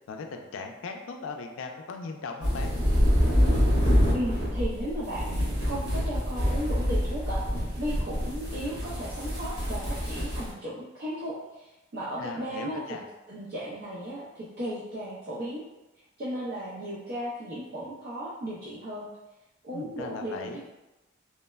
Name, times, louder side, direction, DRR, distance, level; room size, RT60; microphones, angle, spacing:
voice 1, 0.1-2.7 12.2-13.0 19.7-20.6, left 4 dB, 85° left, 4 dB, 0.4 m, -38 dB
sound 1, 2.4-10.5, equal, 80° right, 1.3 m, -26 dB
voice 2, 4.1-13.0 13.3-15.6 16.2-19.1 19.6-20.7, equal, 50° right, -8 dB, 0.4 m, -35 dB
3.1 x 2.0 x 2.2 m, 1.0 s
head